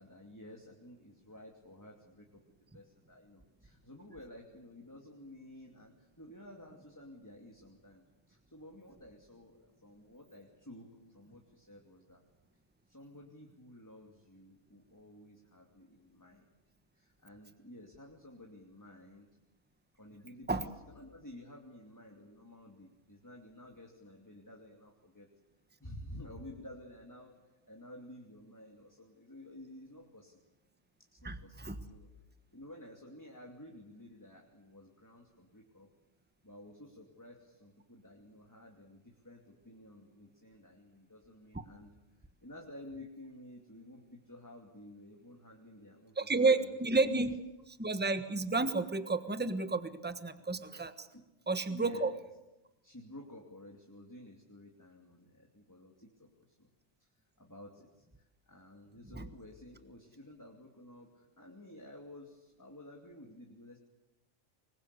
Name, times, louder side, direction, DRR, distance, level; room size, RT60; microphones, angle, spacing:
voice 1, 0.0-2.4 2.7-12.2 12.9-16.5 16.9-19.3 20.0-25.3 25.8-30.4 31.1-32.1 32.5-35.9 36.4-46.8 51.1-51.3 51.7-52.1 52.8-56.7 57.0-63.8, left 1 dB, 15° left, 1 dB, 2.7 m, -53 dB
voice 2, 31.2-31.7 46.2-47.4 47.7-51.1 51.5-52.1 59.1-59.3, right 3 dB, 10° right, 10 dB, 1.2 m, -31 dB
25.5 x 21.5 x 8.3 m, 0.99 s
omnidirectional pair, 1.4 m